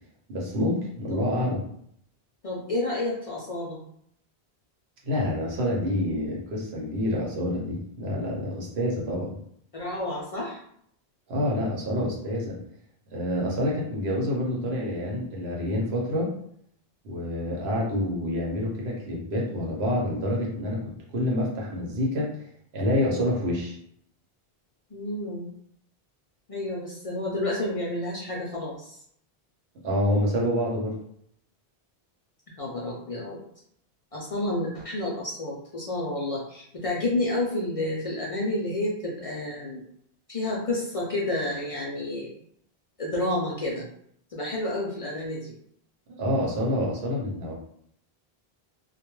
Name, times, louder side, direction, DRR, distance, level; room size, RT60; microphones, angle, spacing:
voice 1, 0.3-1.6 5.0-9.3 11.3-12.6 13.1-16.3 17.0-20.8 21.1-22.4 22.7-23.8 29.8-30.9 46.1-47.5, left 1 dB, 85° right, -2 dB, 1.0 m, -27 dB
voice 2, 2.4-3.8 9.7-10.6 24.9-25.5 26.5-29.0 32.6-33.4 34.1-39.8 40.3-42.3 43.0-43.8 44.3-45.5, left 1 dB, 50° left, -4 dB, 0.4 m, -30 dB
2.2 x 2.2 x 3.0 m, 0.68 s
omnidirectional pair, 1.0 m